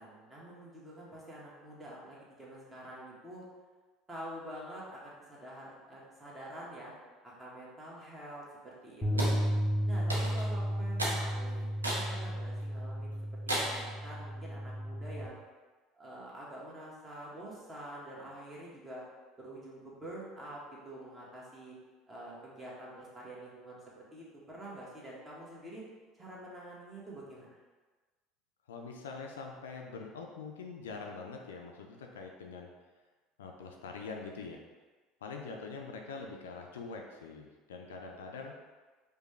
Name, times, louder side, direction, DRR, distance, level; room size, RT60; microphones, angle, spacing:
voice 1, 0.0-3.4 4.1-6.9 7.2-9.4 9.8-13.2 13.5-15.4 16.0-19.0 19.4-21.8 22.1-23.8 24.1-25.8 26.1-27.5, right 1 dB, 20° right, -5 dB, 1.4 m, -47 dB
sound 1, 9.0-15.3, equal, 15° left, 1.3 m, -33 dB
sound 2, 9.2-9.4 10.1-10.5 11.0-11.2 11.8-12.1 12.6-12.7 13.5-13.9, right 1 dB, 90° right, 0.6 m, -33 dB
voice 2, 28.7-32.7 33.4-34.6 35.2-38.5, left 4 dB, 75° left, 2 dB, 0.4 m, -44 dB
5.0 x 2.2 x 3.2 m, 1.3 s
figure-of-eight pair, 65°, 0 cm